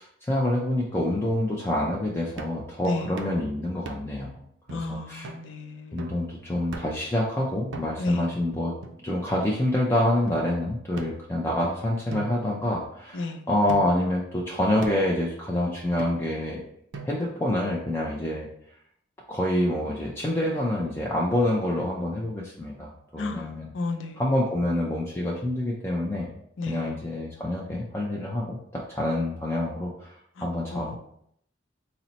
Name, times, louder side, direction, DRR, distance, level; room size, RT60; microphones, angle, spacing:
voice 1, 0.0-4.3 4.7-5.3 5.9-8.7 9.0-16.6 17.0-18.5 19.3-23.7 24.2-26.3 26.7-31.0, left 1 dB, 15° left, -4 dB, 0.4 m, -27 dB
sound 1, 2.4-2.7 3.2-3.4 3.9-4.2 4.7-4.8 5.2-5.5 6.0-6.3 6.7-7.1 7.7-8.2 8.8-9.5 10.3-10.4 11.0-11.7 12.1-13.2 13.7-14.1 14.8-15.2 16.0-16.4 16.9-17.4, right 4 dB, 80° right, 0.5 m, -41 dB
voice 2, 2.8-3.2 4.7-6.2 8.0-8.3 13.1-13.4 23.2-24.3 26.6-27.1 30.4-31.0, left 3 dB, 80° left, 6 dB, 0.5 m, -33 dB
4.3 x 2.0 x 4.0 m, 0.70 s
head